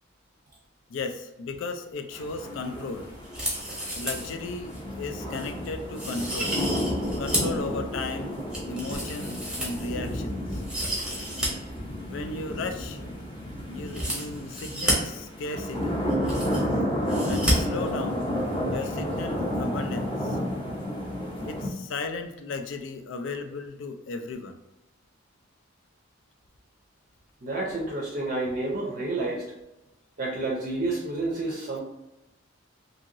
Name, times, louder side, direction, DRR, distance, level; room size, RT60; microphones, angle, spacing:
voice 1, 0.9-3.1 3.9-6.6 7.2-10.6 12.0-13.0 13.7-16.0 17.2-18.3 18.7-20.4 21.4-24.6, left 3 dB, 65° left, 7 dB, 0.4 m, -35 dB
sound 1, 2.1-21.7, equal, 25° left, 0.6 m, -31 dB
sound 2, 3.2-4.3 4.7-4.8 5.3-5.5 5.9-7.6 8.0-10.1 10.5-11.5 11.8-11.9 13.8-14.9 15.8-15.9 16.0-16.8 17.1-17.5 17.8-17.9, equal, 5° right, 0.8 m, -30 dB
voice 2, 27.4-29.5 30.2-31.8, right 2 dB, 40° right, -2 dB, 0.5 m, -29 dB
2.8 x 2.7 x 2.6 m, 0.92 s
head